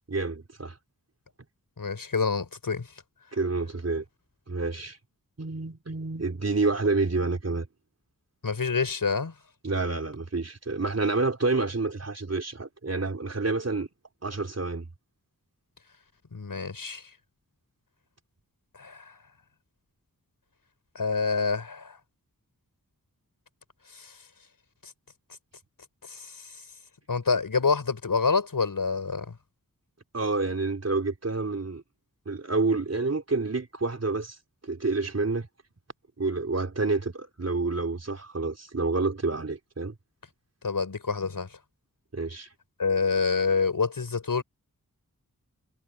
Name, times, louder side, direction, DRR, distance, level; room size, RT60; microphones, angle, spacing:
voice 1, 0.1-0.8 3.3-4.0 4.5-5.0 5.4-7.7 9.6-13.9 14.2-14.9 30.1-31.8 32.3-34.4 34.6-35.5 36.2-39.9 42.1-42.5, right 3 dB, 45° right, 4.0 m, -28 dB
voice 2, 1.8-2.9 8.4-9.3 16.3-17.0 18.7-19.2 20.9-22.0 23.9-24.2 24.8-24.9 26.0-26.6 27.1-29.4 40.6-41.6 42.8-44.4, left 4 dB, 75° left, 5.7 m, -27 dB
wide cardioid pair, 70°, 34 cm